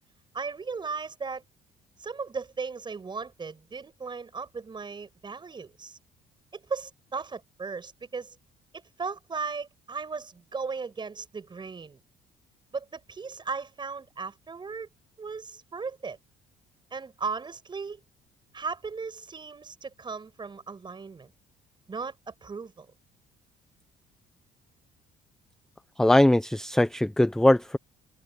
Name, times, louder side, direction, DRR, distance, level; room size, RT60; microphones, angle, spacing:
voice 1, 0.3-1.4 2.0-6.0 6.5-8.3 8.7-12.0 12.7-14.9 15.2-16.2 16.9-18.0 18.5-21.3 21.9-22.9, right 4 dB, 25° right, 6.7 m, -36 dB
voice 2, 26.0-27.8, left 1 dB, 5° left, 0.6 m, -21 dB
cardioid pair, 110°, 17 cm